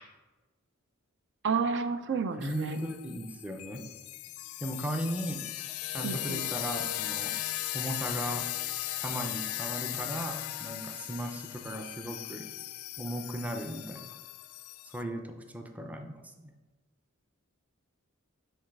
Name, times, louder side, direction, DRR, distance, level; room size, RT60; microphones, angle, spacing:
voice 1, 1.4-2.8 6.0-6.4, right 5 dB, 55° right, 9 dB, 0.4 m, -31 dB
sound 1, 2.4-15.0, left 14 dB, 75° left, 0.3 m, -37 dB
voice 2, 2.4-3.8 4.6-5.5 5.9-7.3 7.7-8.5 9.0-12.5 13.0-14.1 14.8-16.5, equal, 5° right, 4 dB, 0.5 m, -37 dB
5.3 x 4.0 x 5.9 m, 1.2 s
head